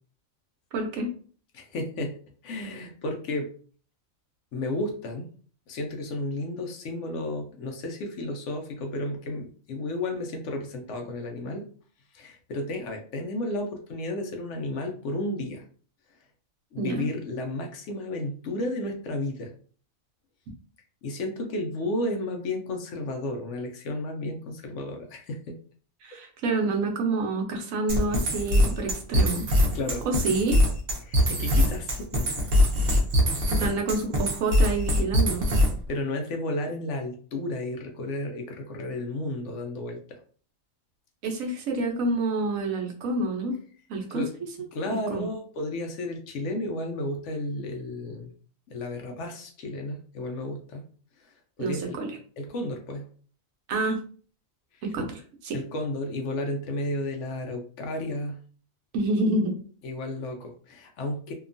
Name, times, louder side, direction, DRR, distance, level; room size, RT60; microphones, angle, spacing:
voice 1, 0.7-1.1 16.8-17.0 26.0-29.5 30.0-30.6 33.6-35.5 41.2-43.6 43.9-44.2 45.1-45.3 51.6-52.1 53.7-54.0 54.8-55.6 58.9-59.6, right 2 dB, 80° right, 3 dB, 1.1 m, -28 dB
voice 2, 1.5-2.2 2.4-3.5 4.5-5.3 5.7-11.6 12.1-15.6 16.7-19.5 21.0-25.6 29.7-30.1 31.0-32.3 35.5-40.2 44.1-44.3 44.7-48.3 48.7-50.8 51.2-52.0 52.4-53.1 54.7-54.9 55.5-58.4 59.8-61.3, left 1 dB, 70° left, 3 dB, 0.8 m, -33 dB
sound 1, 27.9-35.9, left 1 dB, 50° right, 0.8 m, -22 dB
2.8 x 2.2 x 2.5 m, 0.43 s
omnidirectional pair, 1.4 m